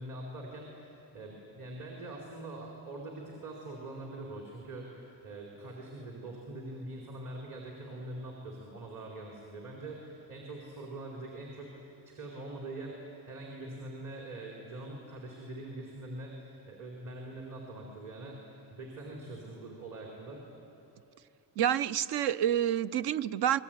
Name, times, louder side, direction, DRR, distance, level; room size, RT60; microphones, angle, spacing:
voice 1, 0.0-20.4, right 2 dB, 50° right, -1 dB, 4.4 m, -43 dB
voice 2, 21.6-23.6, right 10 dB, 70° right, 15 dB, 0.7 m, -28 dB
26.0 x 21.0 x 9.3 m, 2.8 s
cardioid pair, 120°, 40 cm